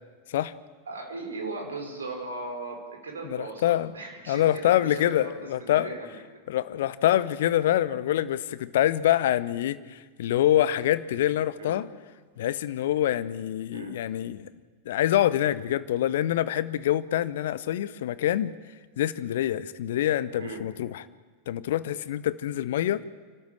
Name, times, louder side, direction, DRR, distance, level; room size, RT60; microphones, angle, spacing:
voice 1, 0.9-5.3 5.6-6.1 7.0-7.2 7.9-8.0 11.6-11.8 13.7-13.9 20.4-20.6, right 3 dB, 70° right, 3 dB, 4.8 m, -38 dB
voice 2, 3.2-3.9 4.3-5.9 6.5-11.9 12.4-14.5 14.9-18.5 19.0-21.1 21.5-23.0, left 12 dB, 55° left, 17 dB, 0.8 m, -25 dB
28.0 x 12.5 x 7.5 m, 1.5 s
figure-of-eight pair, 90°, 0 cm